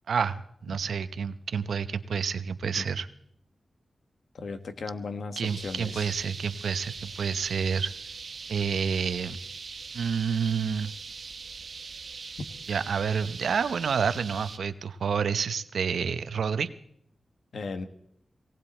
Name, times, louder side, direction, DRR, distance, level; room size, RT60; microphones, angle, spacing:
voice 1, 0.1-3.1 5.4-7.9 8.5-9.4 9.9-10.9 12.7-16.7, right 6 dB, 90° right, 12 dB, 0.7 m, -29 dB
voice 2, 4.3-6.2 17.5-17.9, left 4 dB, 80° left, 8 dB, 1.4 m, -36 dB
sound 1, 5.4-14.6, right 5 dB, 70° right, 1.1 m, -41 dB
18.5 x 18.0 x 4.3 m, 0.70 s
cardioid pair, 70°, 0 cm